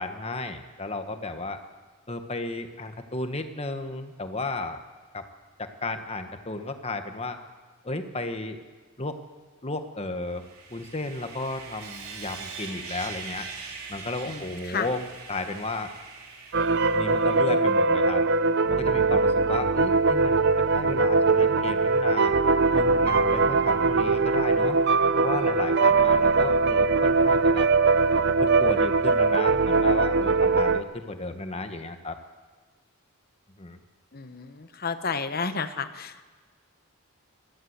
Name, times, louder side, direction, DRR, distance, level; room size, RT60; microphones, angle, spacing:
voice 1, 0.0-1.6 2.1-4.8 5.1-5.2 5.6-7.4 7.8-8.6 9.0-9.2 9.6-13.5 13.9-15.0 15.3-15.9 16.9-18.2 18.6-22.3 22.7-24.8 25.2-27.7 28.4-32.2 33.6-33.8, left 2 dB, 25° left, 7 dB, 1.3 m, -34 dB
Sawing, 10.3-17.7, right 5 dB, 85° right, 3.7 m, -42 dB
voice 2, 14.2-14.9 34.1-36.2, left 5 dB, 45° left, 11 dB, 1.0 m, -32 dB
sound 1, 16.5-30.8, right 3 dB, 50° right, 0.6 m, -21 dB
23.0 x 14.5 x 8.0 m, 1.4 s
head